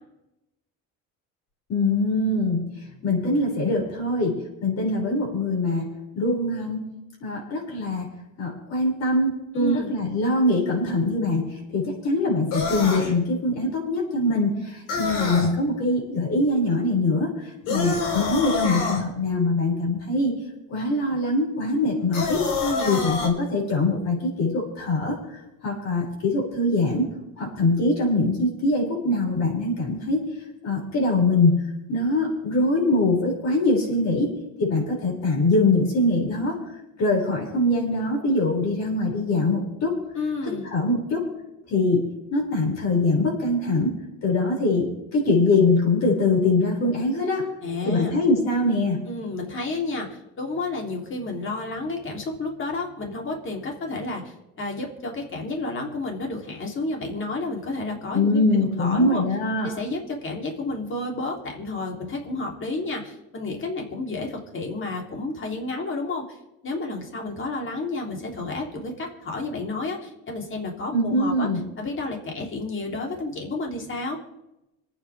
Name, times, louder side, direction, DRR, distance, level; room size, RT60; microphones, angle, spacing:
voice 1, 1.7-2.7 3.0-6.9 7.2-8.1 8.4-20.4 20.7-22.4 22.8-30.3 30.6-31.6 31.9-34.3 34.6-36.6 37.0-40.0 40.7-41.3 41.7-47.5 47.8-49.0 58.1-59.7 70.9-71.6, left 2 dB, 55° left, -2 dB, 6.8 m, -23 dB
voice 2, 9.6-9.9 22.6-23.0 40.1-40.7 47.6-48.2 49.0-58.4 58.8-59.2 59.6-71.5 71.8-74.2, left 3 dB, 40° left, 1 dB, 3.5 m, -31 dB
sound 1, 12.5-13.1 14.9-15.5 17.7-19.0 22.1-23.3, left 4 dB, 80° left, 4.5 m, -27 dB
26.5 x 9.4 x 3.6 m, 0.92 s
cardioid pair, 100°, 32 cm